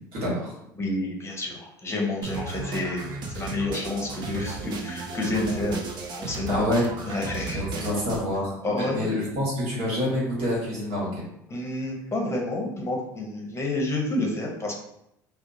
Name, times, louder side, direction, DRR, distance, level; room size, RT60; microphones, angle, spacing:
voice 1, 0.1-0.5 6.5-6.8 7.5-8.5 8.9-11.1, left 1 dB, 65° right, -4 dB, 1.2 m, -27 dB
voice 2, 0.8-3.1 3.3-5.8 6.2-6.6 7.1-7.9 8.6-9.1 11.5-14.7, left 2 dB, 25° left, 0 dB, 0.7 m, -29 dB
sound 1, 2.2-8.2, right 3 dB, 45° right, 0.5 m, -35 dB
2.7 x 2.0 x 2.6 m, 0.79 s
hypercardioid pair, 65°, 10 cm